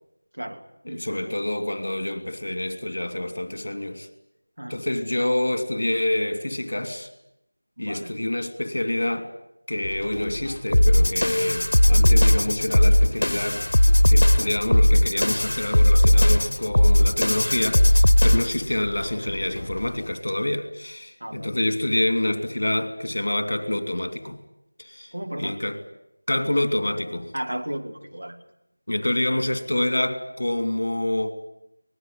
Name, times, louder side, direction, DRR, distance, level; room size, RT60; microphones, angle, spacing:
voice 1, 0.3-1.4 4.6-4.8 7.8-8.1 18.2-18.4 21.2-21.5 25.1-25.6 27.3-28.4, right 1 dB, 70° right, 6 dB, 3.0 m, -34 dB
voice 2, 0.9-4.1 4.7-7.1 7.8-9.3 9.7-13.6 14.1-24.4 24.8-25.1 25.4-25.8 26.3-27.3 28.9-31.3, left 1 dB, 50° left, 9 dB, 3.0 m, -27 dB
sound 1, 9.8-20.1, left 1 dB, 20° left, 5.2 m, -37 dB
sound 2, 10.7-18.7, left 1 dB, 75° left, 1.1 m, -18 dB
24.5 x 20.5 x 9.1 m, 0.80 s
figure-of-eight pair, 175°, 0 cm